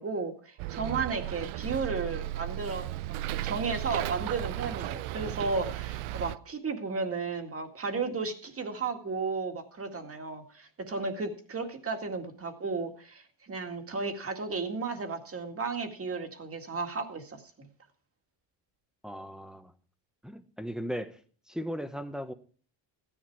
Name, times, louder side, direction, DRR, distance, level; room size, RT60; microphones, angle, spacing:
voice 1, 0.0-17.7, right 4 dB, 25° right, 2.0 m, -34 dB
Bus, 0.6-6.4, right 15 dB, 75° right, 0.7 m, -35 dB
voice 2, 19.0-19.7 20.2-21.2 21.5-22.3, equal, ahead, 1.0 m, -37 dB
15.5 x 10.5 x 4.7 m
cardioid pair, 135°, 50 cm